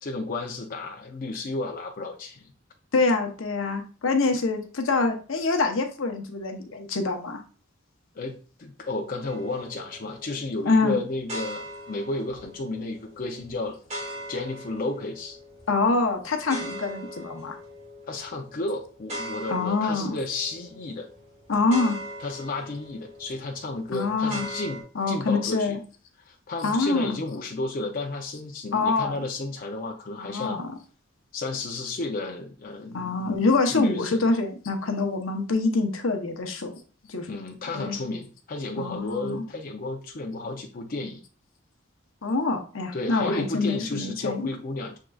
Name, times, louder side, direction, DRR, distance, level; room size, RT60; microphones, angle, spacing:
voice 1, 0.0-2.5 4.3-4.4 8.1-13.8 14.3-15.4 18.1-21.1 22.2-25.8 26.2-30.6 31.3-34.2 37.3-41.2 42.9-45.0, left 2 dB, 45° left, 2 dB, 0.5 m, -32 dB
voice 2, 2.9-7.4 10.7-11.0 15.7-17.6 19.5-20.2 21.5-22.0 23.9-24.5 25.0-25.8 26.6-27.2 28.7-29.2 30.2-30.7 32.9-36.8 37.1-37.3 37.7-38.0 38.8-39.4 42.2-44.5, left 3 dB, 75° left, 5 dB, 0.8 m, -25 dB
sound 1, 9.2-24.8, equal, 35° right, 1.7 m, -41 dB
6.2 x 3.7 x 2.3 m, 0.38 s
head